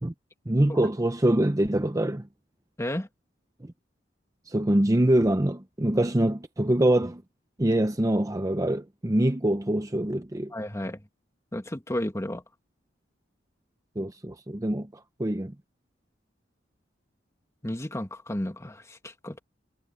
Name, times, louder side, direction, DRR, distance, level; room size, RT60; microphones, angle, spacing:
voice 1, 0.5-2.3 3.6-3.7 4.5-7.2 7.6-10.5 14.0-14.9 15.2-15.5, right 1 dB, 20° right, 0.7 m, -24 dB
voice 2, 10.5-11.0 11.5-12.4 17.6-19.4, left 1 dB, 15° left, 1.9 m, -32 dB
head